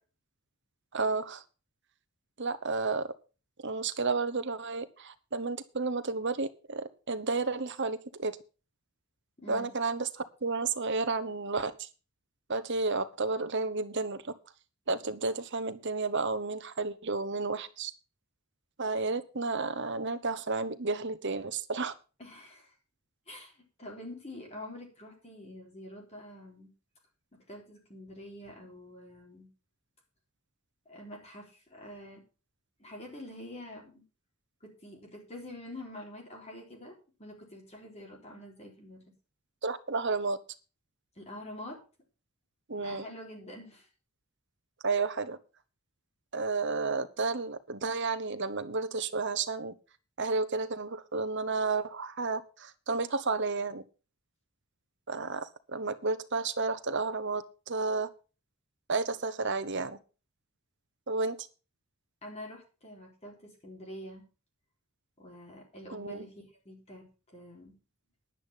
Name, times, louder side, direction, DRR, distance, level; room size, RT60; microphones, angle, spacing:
voice 1, 0.9-1.4 2.4-3.1 3.6-8.4 9.5-11.9 12.5-14.3 14.9-17.9 18.8-21.9 39.6-40.4 42.7-43.1 44.8-45.4 46.3-49.7 50.2-53.8 55.1-58.1 58.9-60.0 61.1-61.4 65.9-66.3, right 3 dB, 55° right, 11 dB, 1.1 m, -32 dB
voice 2, 9.4-9.7 22.2-22.7 23.3-26.7 27.5-29.5 30.9-32.2 32.8-34.0 34.6-36.9 37.2-39.0 41.2-41.8 42.7-43.9 62.2-64.3 65.2-67.1 67.3-67.8, left 1 dB, 30° left, 1 dB, 3.9 m, -46 dB
10.0 x 10.0 x 5.7 m, 0.34 s
head